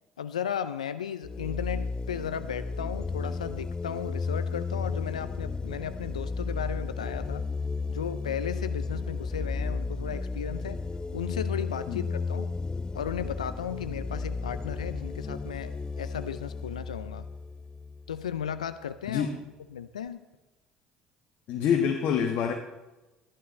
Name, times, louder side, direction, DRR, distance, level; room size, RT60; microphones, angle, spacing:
voice 1, 0.2-7.5 7.9-10.8 11.1-12.5 12.9-17.3 18.1-19.3 19.7-20.3, left 8 dB, 90° left, 13 dB, 0.5 m, -35 dB
sound 1, 1.2-18.6, left 4 dB, 20° left, 0.6 m, -34 dB
voice 2, 21.5-22.5, left 7 dB, 60° left, 2 dB, 1.3 m, -26 dB
13.0 x 11.5 x 4.2 m, 1.1 s
hypercardioid pair, 60°, 4 cm